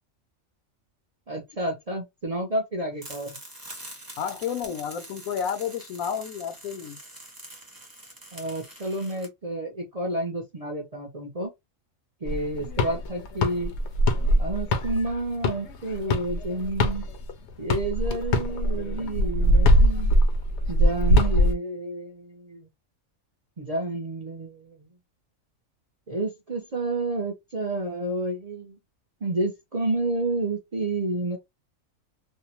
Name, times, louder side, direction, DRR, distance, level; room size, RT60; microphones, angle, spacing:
voice 1, 1.3-3.4 8.3-11.5 12.2-13.7 14.4-17.1 17.6-20.1 20.7-22.7 23.6-24.9 26.1-28.8 29.2-31.4, right 2 dB, 45° right, 0.5 m, -30 dB
sound 1, 3.0-9.3, right 1 dB, 20° right, 0.8 m, -44 dB
voice 2, 4.2-7.0, left 8 dB, 85° left, 1.1 m, -31 dB
sound 2, 12.3-17.3 17.7-21.5, equal, 65° left, 0.8 m, -22 dB
2.7 x 2.1 x 2.8 m
omnidirectional pair, 1.4 m